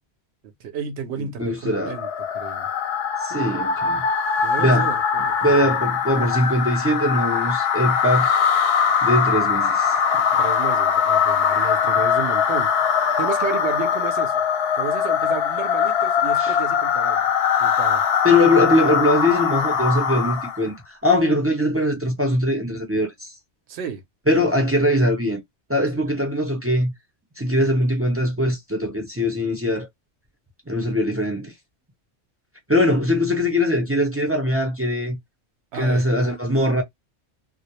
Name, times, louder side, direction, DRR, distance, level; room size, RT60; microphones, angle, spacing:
voice 1, 0.4-2.7 3.3-3.6 4.4-5.7 10.4-14.4 14.7-17.3 17.6-18.2 23.7-24.0 25.9-26.1 27.5-27.7 35.7-36.1, right 8 dB, 80° right, 0.9 m, -33 dB
voice 2, 1.2-1.9 3.2-4.0 4.6-4.9 5.2-8.4 9.0-10.0 16.4-16.5 18.2-23.3 24.3-25.4 25.7-26.9 27.4-29.9 30.7-31.5 32.7-35.2 35.7-36.8, left 1 dB, 20° right, 0.4 m, -21 dB
sound 1, 1.8-20.7, left 7 dB, 70° left, 0.8 m, -21 dB
2.2 x 2.0 x 2.8 m
omnidirectional pair, 1.1 m